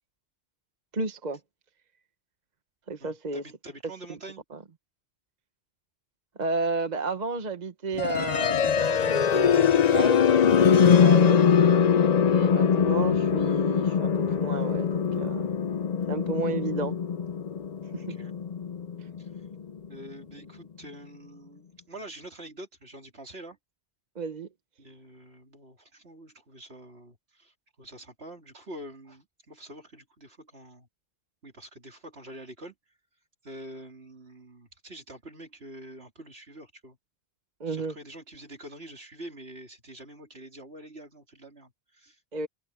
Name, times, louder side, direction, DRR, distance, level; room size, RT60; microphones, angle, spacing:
voice 1, 0.9-1.4 2.9-3.4 4.1-4.2 4.5-4.6 6.4-10.2 10.7-11.4 12.3-15.5 16.1-17.0 17.9-18.1 24.1-24.5 37.6-37.9 42.3-42.5, right 3 dB, 45° right, 1.2 m, -32 dB
voice 2, 3.0-4.4 11.2-11.4 17.9-18.4 19.2-19.3 19.9-23.6 24.8-30.9 31.4-32.7 33.4-37.0 37.7-42.2, right 1 dB, 70° right, 3.9 m, -46 dB
sound 1, 8.0-19.9, left 7 dB, 50° left, 0.6 m, -22 dB
omnidirectional pair, 1.1 m